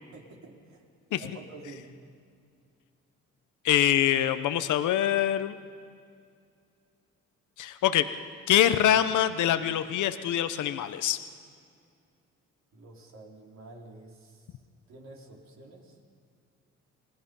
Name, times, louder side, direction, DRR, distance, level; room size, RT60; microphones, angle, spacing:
voice 1, 0.1-0.9 1.1-1.9 12.7-14.6 14.9-16.0, right 2 dB, 65° right, -1 dB, 4.3 m, -49 dB
voice 2, 3.6-5.6 7.6-8.1 8.5-11.2, left 11 dB, 80° left, 11 dB, 1.0 m, -24 dB
28.0 x 19.0 x 5.5 m, 2.3 s
cardioid pair, 90°, 30 cm